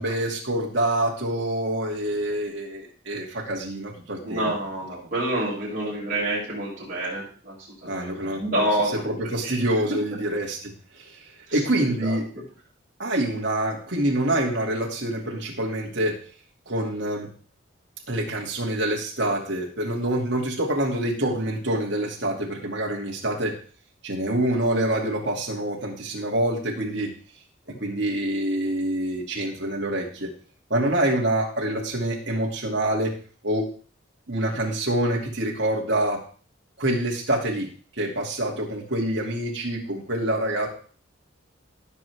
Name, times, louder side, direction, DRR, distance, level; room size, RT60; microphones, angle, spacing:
voice 1, 0.0-4.5 7.8-8.4 9.0-11.2 11.5-12.3 13.0-16.2 16.7-17.3 18.1-23.5 24.0-27.1 27.8-30.3 30.7-33.1 33.4-33.7 34.3-36.2 36.8-37.7 38.0-40.7, right 1 dB, 60° right, -2 dB, 2.5 m, -26 dB
voice 2, 4.2-7.5 7.8-9.0 9.4-9.6 9.9-10.0 11.5-11.6 11.9-12.2, right 1 dB, 40° right, -9 dB, 6.5 m, -28 dB
17.5 x 6.5 x 3.5 m, 0.40 s
head